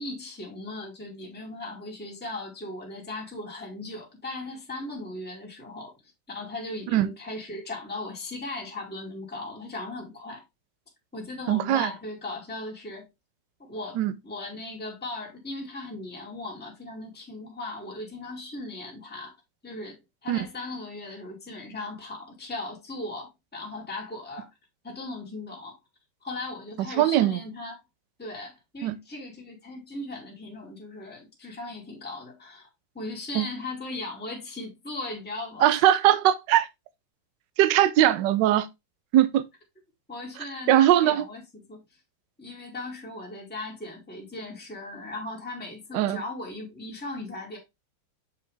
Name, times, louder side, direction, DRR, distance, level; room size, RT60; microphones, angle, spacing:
voice 1, 0.0-5.9 6.3-10.4 11.1-13.1 13.7-19.3 19.6-24.5 24.8-25.8 26.2-27.7 28.2-32.6 32.9-35.8 40.1-41.8 42.4-47.6, left 2 dB, 5° left, 1.9 m, -38 dB
voice 2, 11.5-11.9 14.0-14.1 20.3-20.4 27.0-27.4 28.8-29.0 33.3-33.4 35.6-36.7 37.6-38.7 39.1-39.4 40.7-41.2 45.9-46.2, right 12 dB, 70° right, 1.1 m, -20 dB
6.9 x 4.9 x 3.3 m
omnidirectional pair, 2.4 m